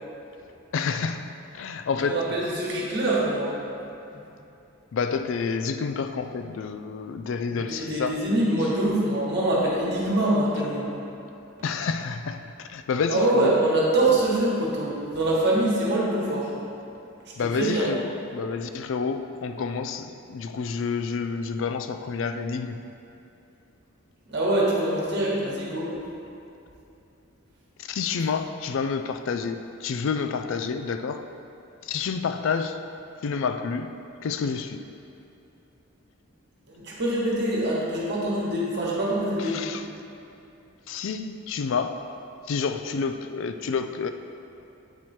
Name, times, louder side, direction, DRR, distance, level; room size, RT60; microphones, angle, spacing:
voice 1, 0.7-2.3 4.9-8.2 11.6-13.5 17.4-22.8 27.8-31.3 31.8-32.8 33.2-33.9 34.2-34.8 39.4-39.8 40.9-42.0 42.5-44.1, left 5 dB, 65° left, 8 dB, 0.3 m, -29 dB
voice 2, 1.9-3.5 7.5-10.9 13.1-16.5 17.4-17.9 24.3-25.9 36.7-39.7, right 1 dB, 55° right, -5 dB, 1.4 m, -24 dB
8.0 x 4.5 x 4.3 m, 2.8 s
head